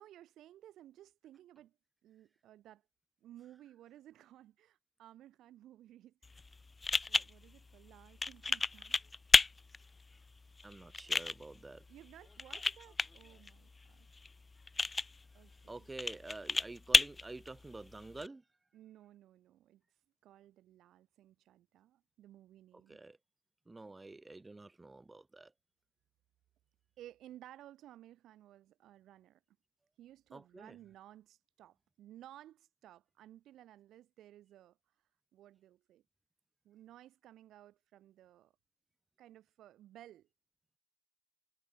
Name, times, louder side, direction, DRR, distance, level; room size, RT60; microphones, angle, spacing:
voice 1, 0.0-1.8 2.0-2.8 3.2-6.5 7.1-9.0 11.0-11.2 11.9-14.1 15.3-15.9 18.7-19.8 20.2-23.0 27.0-29.4 30.0-34.8 35.3-36.0 36.6-38.5 39.2-40.3, right 13 dB, 30° right, 6.4 m, -57 dB
sound 1, 6.2-18.3, left 3 dB, 10° left, 1.0 m, -34 dB
voice 2, 10.6-11.8 15.7-18.4 22.7-23.2 23.7-25.5 30.3-30.8, right 2 dB, 10° right, 2.8 m, -48 dB
figure-of-eight pair, 90°, 0 cm